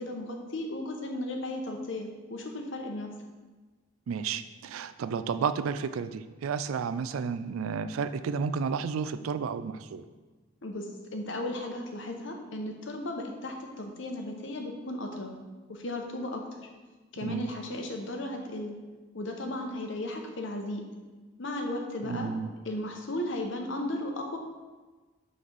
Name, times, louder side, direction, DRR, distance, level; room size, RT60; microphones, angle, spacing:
voice 1, 0.0-3.1 10.6-15.3 15.7-16.4 17.1-18.8 19.1-20.8 21.4-22.3 22.6-24.4, left 1 dB, 65° left, 3 dB, 0.8 m, -35 dB
voice 2, 4.1-10.0 17.2-17.5 22.0-22.5, right 6 dB, 90° right, 12 dB, 0.3 m, -32 dB
5.8 x 3.2 x 5.4 m, 1.3 s
head